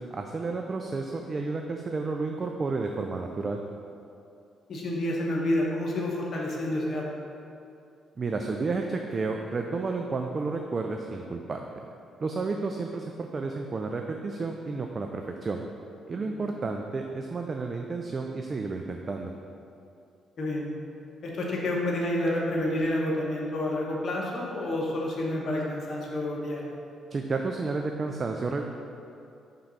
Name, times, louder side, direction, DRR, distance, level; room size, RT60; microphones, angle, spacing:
voice 1, 0.0-3.6 8.2-11.6 12.2-15.6 16.1-19.3 27.1-28.6, right 3 dB, 35° right, 3 dB, 0.3 m, -31 dB
voice 2, 4.7-7.1 16.2-16.4 20.4-20.7 21.2-26.7, left 1 dB, 55° left, -2 dB, 1.1 m, -29 dB
4.5 x 3.8 x 5.6 m, 2.6 s
cardioid pair, 90°, 0 cm